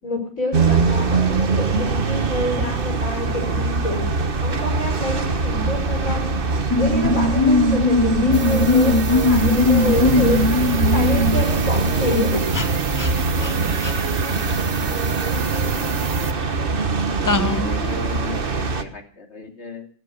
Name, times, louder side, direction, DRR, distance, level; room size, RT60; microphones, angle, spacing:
voice 1, 0.0-4.1 4.4-6.4 6.8-12.5, left 1 dB, 65° left, 2 dB, 6.5 m, -27 dB
sound 1, 0.5-18.8, right 4 dB, 40° right, 1.3 m, -22 dB
sound 2, 6.7-11.5 12.5-12.7 13.0-13.1 13.4-13.5 13.8-13.9 17.3-17.8, left 3 dB, 25° left, 0.4 m, -19 dB
sound 3, 8.3-16.3, right 7 dB, 60° right, 1.6 m, -31 dB
voice 2, 17.0-19.9, left 3 dB, 45° left, 3 dB, 3.1 m, -35 dB
17.0 x 12.5 x 6.5 m, 0.42 s
omnidirectional pair, 1.5 m